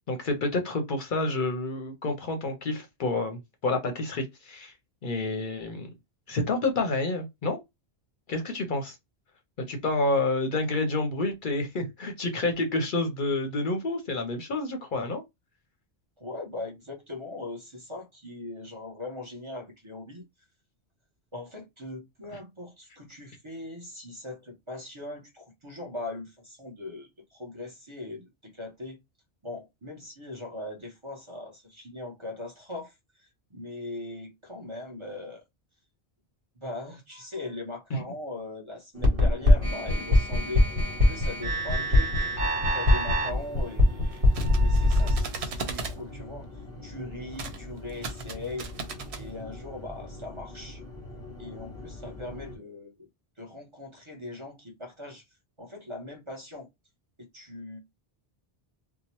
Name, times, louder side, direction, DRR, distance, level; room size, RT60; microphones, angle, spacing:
voice 1, 0.1-4.7 5.0-5.9 6.3-7.6 8.3-9.0 9.7-15.2 37.9-38.0, left 2 dB, 60° left, 0.7 m, -29 dB
voice 2, 16.2-20.2 21.3-29.0 29.4-35.4 36.6-42.3 42.7-46.5 46.8-48.7 49.1-50.8 51.4-53.1 53.4-55.2 55.6-56.7 57.3-57.8, left 2 dB, 30° right, 0.8 m, -40 dB
sound 1, 38.9-52.6, left 1 dB, 5° left, 1.0 m, -43 dB
sound 2, 39.0-45.2, left 1 dB, 60° right, 1.3 m, -22 dB
sound 3, 44.1-46.0 47.3-47.6 47.9-49.2, right 3 dB, 90° right, 1.0 m, -37 dB
2.9 x 2.1 x 2.8 m
omnidirectional pair, 1.1 m